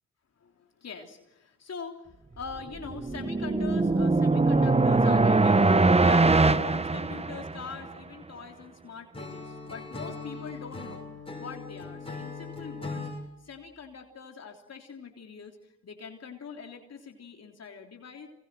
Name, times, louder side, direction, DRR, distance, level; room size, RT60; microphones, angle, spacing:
voice 1, 0.4-11.1 11.4-13.1 13.4-18.3, left 5 dB, 50° left, 3 dB, 3.4 m, -43 dB
sound 1, 2.6-7.8, right 3 dB, 20° right, 1.3 m, -22 dB
Acoustic guitar / Strum, 9.1-13.2, left 3 dB, 15° left, 6.7 m, -39 dB
27.0 x 22.5 x 7.8 m, 0.88 s
supercardioid pair, 50°, 32 cm